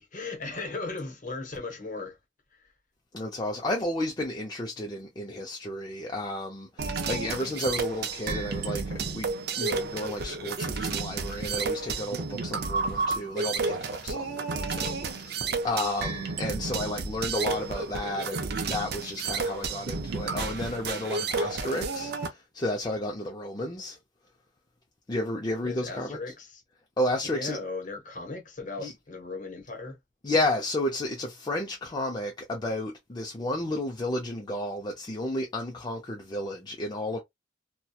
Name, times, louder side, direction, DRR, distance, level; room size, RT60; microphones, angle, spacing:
voice 1, 0.0-2.2 2.5-2.6 25.6-26.6 27.2-30.0, left 3 dB, 45° left, 0.8 m, -37 dB
voice 2, 3.1-15.4 15.6-24.0 25.1-26.2 27.0-27.6 28.8-28.9 30.2-37.2, left 1 dB, 25° left, 0.4 m, -32 dB
sound 1, 6.8-22.3, right 4 dB, 55° right, 0.5 m, -31 dB
2.8 x 2.2 x 2.2 m
head